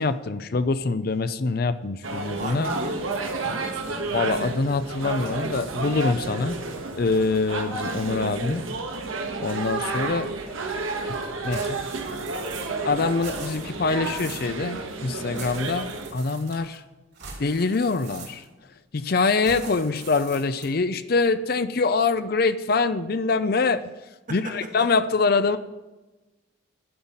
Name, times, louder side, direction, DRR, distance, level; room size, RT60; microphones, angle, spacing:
voice 1, 0.0-2.7 4.1-6.6 6.9-8.6 9.4-10.3 10.6-10.8 11.0-11.2 11.4-11.9 12.8-16.8 17.4-18.4 18.9-23.8 24.3-25.6, left 4 dB, 50° left, 12 dB, 0.5 m, -24 dB
sound 1, 2.0-16.1, right 3 dB, 90° right, 1.5 m, -31 dB
voice 2, 2.3-3.0 3.4-4.1 24.3-24.9, right 1 dB, 40° right, 4 dB, 1.4 m, -36 dB
sound 2, 11.5-12.8 13.1-14.6 15.3-16.8 17.1-18.6 19.4-20.8, right 5 dB, 60° right, 3.1 m, -42 dB
11.0 x 5.6 x 8.9 m, 1.1 s
head